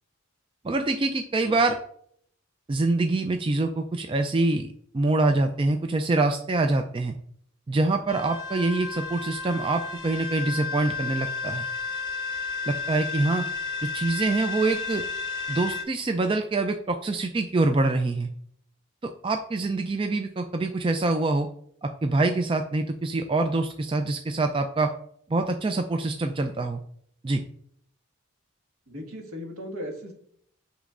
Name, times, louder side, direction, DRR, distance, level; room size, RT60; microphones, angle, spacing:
voice 1, 0.6-1.8 2.7-4.7 4.9-7.1 7.7-11.7 12.7-13.4 13.9-15.0 15.5-18.3 19.0-21.5 21.8-24.9 25.3-26.8 27.2-27.4, right 2 dB, 25° right, 6 dB, 0.3 m, -25 dB
sound 1, 8.1-15.8, left 4 dB, 20° left, 0.9 m, -32 dB
voice 2, 28.9-30.1, equal, 75° right, 1 dB, 1.7 m, -37 dB
8.3 x 6.1 x 2.5 m, 0.65 s
head